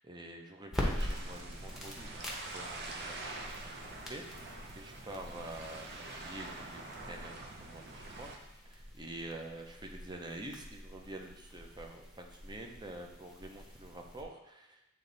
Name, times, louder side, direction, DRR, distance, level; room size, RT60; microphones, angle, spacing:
voice 1, 0.0-8.3 8.6-14.8, right 1 dB, 20° right, 2 dB, 0.7 m, -47 dB
sound 1, 0.7-14.2, equal, ahead, 1.0 m, -44 dB
sound 2, 1.0-8.4, right 2 dB, 50° right, 0.8 m, -46 dB
8.6 x 3.2 x 4.0 m, 0.88 s
head